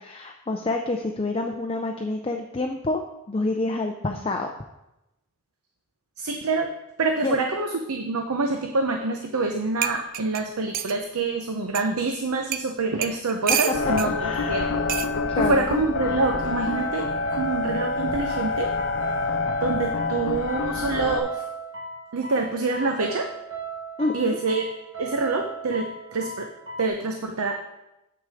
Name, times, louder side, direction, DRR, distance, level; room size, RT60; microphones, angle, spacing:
voice 1, 0.0-3.0 3.3-4.5 7.2-7.4 13.5-13.6 14.2-14.6 15.3-15.6 24.0-24.4, left 2 dB, 25° left, 3 dB, 0.5 m, -28 dB
voice 2, 6.2-6.7 7.0-14.7 15.5-18.7 19.6-21.4 22.1-23.3 24.1-24.6 25.0-26.5 26.8-27.6, right 3 dB, 90° right, 4 dB, 0.7 m, -26 dB
sound 1, 9.4-9.5 9.8-11.0 11.7-11.9 12.5-12.7 13.0-14.1 14.9-15.1 16.2-16.5, right 9 dB, 40° right, 0.4 m, -28 dB
sound 2, 13.7-21.2, left 4 dB, 60° left, 0.6 m, -27 dB
sound 3, 16.1-26.9, right 3 dB, 60° right, 2.0 m, -37 dB
8.0 x 6.4 x 4.9 m, 0.91 s
head